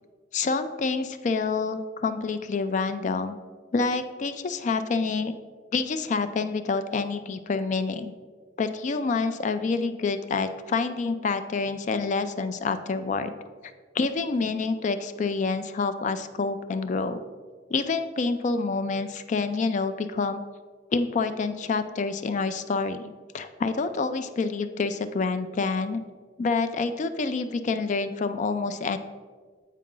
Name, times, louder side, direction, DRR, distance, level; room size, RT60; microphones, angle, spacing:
voice 1, 0.3-3.4 3.7-5.3 5.7-8.1 8.6-13.3 13.9-17.2 17.7-20.4 20.9-26.0 26.4-29.0, left 4 dB, 45° left, 10 dB, 0.3 m, -27 dB
8.2 x 4.6 x 3.8 m, 1.5 s
head